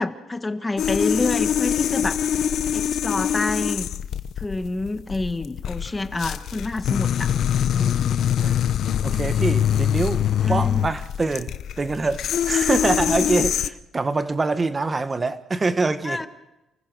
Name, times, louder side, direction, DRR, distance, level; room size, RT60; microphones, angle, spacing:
voice 1, 0.0-2.2 2.7-3.9 4.4-7.3 7.7-8.2 10.4-10.9 16.0-16.3, left 2 dB, 20° left, 1.5 m, -27 dB
sound 1, 0.8-13.7, left 9 dB, 70° left, 0.8 m, -24 dB
voice 2, 9.0-16.3, right 3 dB, 25° right, 1.3 m, -25 dB
29.0 x 15.5 x 6.3 m
cardioid pair, 90°, 0 cm